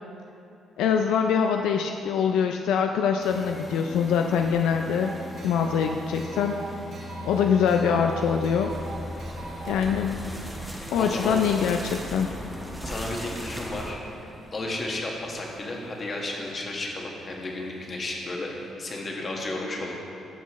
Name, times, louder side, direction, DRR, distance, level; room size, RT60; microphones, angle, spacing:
voice 1, 0.8-5.2 5.4-6.5 7.3-8.7 9.7-10.2 10.9-12.3, left 7 dB, 90° left, 4 dB, 0.3 m, -24 dB
sound 1, 3.2-18.7, left 1 dB, 25° left, 1.0 m, -41 dB
sound 2, 4.9-9.9, right 3 dB, 60° right, 1.1 m, -41 dB
sound 3, 8.7-13.9, right 1 dB, 10° right, 1.1 m, -38 dB
voice 2, 11.0-11.6 12.8-19.9, left 2 dB, 40° left, -1 dB, 1.5 m, -33 dB
12.5 x 6.3 x 3.1 m, 2.6 s
cardioid pair, 90°, 0 cm